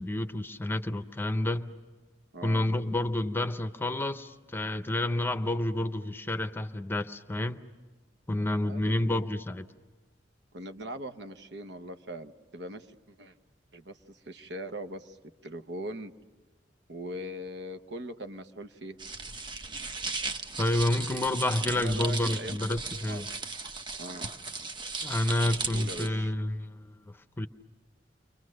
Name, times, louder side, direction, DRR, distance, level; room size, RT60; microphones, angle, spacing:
voice 1, 0.0-1.7 2.4-7.6 8.3-9.7 20.6-23.3 25.0-27.5, left 1 dB, 15° left, 0.8 m, -29 dB
voice 2, 2.3-2.7 8.6-9.0 10.5-13.4 13.7-15.2 15.4-16.1 16.9-19.0 21.7-22.6 23.0-23.3 24.0-24.3 25.7-26.3, right 1 dB, 75° right, 1.1 m, -41 dB
sound 1, 19.0-26.1, right 3 dB, 25° right, 0.9 m, -36 dB
30.0 x 24.5 x 6.5 m
head